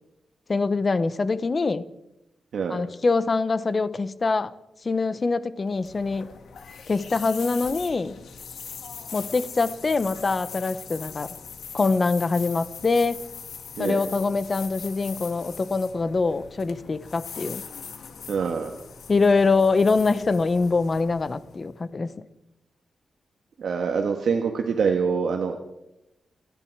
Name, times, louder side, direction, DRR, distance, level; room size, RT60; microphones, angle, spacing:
voice 1, 0.5-1.8 2.7-4.5 4.8-6.3 6.9-8.2 9.1-11.3 11.7-13.2 13.8-17.6 19.1-22.1, left 4 dB, 35° left, 14 dB, 0.9 m, -24 dB
sound 1, 5.6-21.8, left 6 dB, 85° left, 2.1 m, -41 dB
voice 2, 18.3-18.7 23.6-25.6, right 5 dB, 75° right, 3 dB, 1.5 m, -25 dB
29.0 x 10.5 x 4.7 m, 0.90 s
wide cardioid pair, 120°, 0 cm